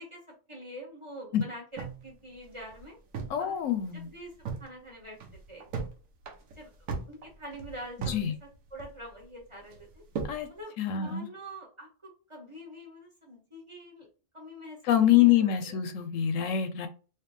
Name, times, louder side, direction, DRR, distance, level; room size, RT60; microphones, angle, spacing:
voice 1, 0.0-3.0 3.4-5.2 5.5-5.7 6.5-10.0 10.5-14.1 14.3-15.8, equal, 25° right, -2 dB, 1.0 m, -46 dB
sound 1, 1.8-3.5 3.8-3.9 4.2-4.7 5.1-5.9 6.2-8.3 8.5-9.2 9.7-10.4, right 5 dB, 85° right, 1.2 m, -37 dB
voice 2, 3.3-4.1 8.0-8.3 10.2-10.5 10.8-11.3 14.8-16.9, left 11 dB, 75° left, 9 dB, 0.9 m, -25 dB
3.3 x 3.0 x 3.2 m, 0.36 s
omnidirectional pair, 1.4 m